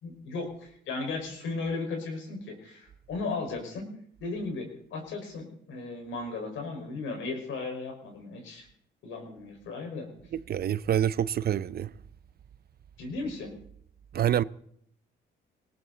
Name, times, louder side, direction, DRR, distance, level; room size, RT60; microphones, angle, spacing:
voice 1, 0.0-3.9 4.2-8.7 9.0-10.1 13.0-13.5, left 3 dB, 80° left, 5.0 m, -36 dB
voice 2, 10.5-11.9 14.1-14.4, right 10 dB, 50° right, 0.6 m, -26 dB
19.0 x 17.5 x 4.0 m
cardioid pair, 90°, 20 cm